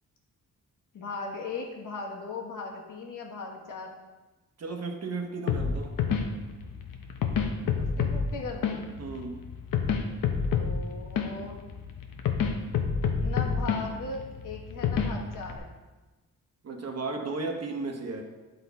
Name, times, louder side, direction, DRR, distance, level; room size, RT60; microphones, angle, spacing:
voice 1, 0.9-4.0 7.7-8.8 10.6-11.6 13.2-15.7, left 4 dB, 70° left, 1 dB, 1.3 m, -38 dB
voice 2, 4.6-5.9 9.0-9.4 16.6-18.2, right 3 dB, 50° right, 3 dB, 1.0 m, -34 dB
sound 1, 5.5-15.6, left 6 dB, 85° left, 0.8 m, -29 dB
8.9 x 4.1 x 4.1 m, 1.2 s
cardioid pair, 95°, 32 cm